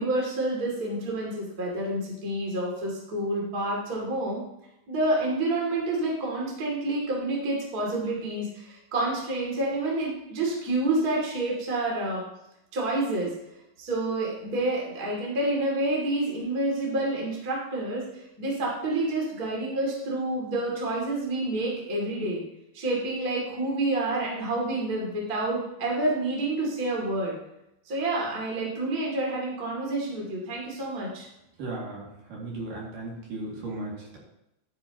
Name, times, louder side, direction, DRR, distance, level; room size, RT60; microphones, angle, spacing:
voice 1, 0.0-4.4 4.9-12.2 12.7-13.3 13.8-22.4 22.7-27.3 27.9-31.3, right 2 dB, 25° right, -3 dB, 2.4 m, -28 dB
voice 2, 31.6-34.2, right 2 dB, 55° right, -4 dB, 3.7 m, -36 dB
12.0 x 9.4 x 2.9 m, 0.86 s
omnidirectional pair, 4.9 m